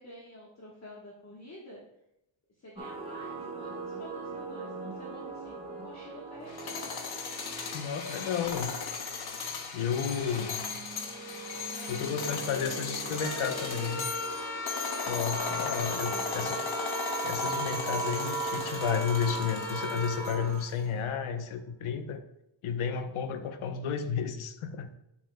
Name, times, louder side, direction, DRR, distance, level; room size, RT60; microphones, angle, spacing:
voice 1, 0.0-1.8 2.6-6.8 10.0-10.5 11.6-11.9 12.1-12.8 13.0-13.9 15.3-16.5, left 1 dB, 35° left, -3 dB, 1.3 m, -49 dB
sound 1, 2.8-20.6, right 5 dB, 10° right, 1.2 m, -40 dB
sound 2, 6.5-20.6, left 5 dB, 50° left, 1.0 m, -37 dB
voice 2, 7.7-8.8 9.7-10.6 11.9-14.0 15.1-16.6 17.2-22.2 22.6-24.9, left 7 dB, 75° left, 8 dB, 0.9 m, -32 dB
sound 3, 13.1-21.3, left 2 dB, 5° left, 1.5 m, -38 dB
8.6 x 8.1 x 2.2 m, 0.83 s
cardioid pair, 115°, 49 cm